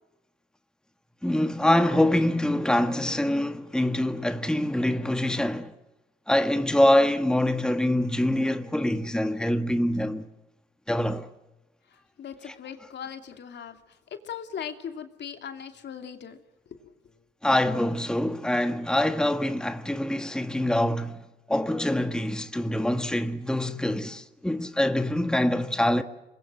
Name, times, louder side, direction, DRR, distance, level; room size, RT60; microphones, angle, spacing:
voice 1, 1.2-5.7 6.3-10.3 10.9-11.3 12.5-12.6 17.4-26.0, left 1 dB, 5° left, 1.4 m, -25 dB
voice 2, 11.9-16.4 16.7-16.9, left 8 dB, 60° left, 2.7 m, -39 dB
26.5 x 22.0 x 7.6 m
cardioid pair, 90°, 20 cm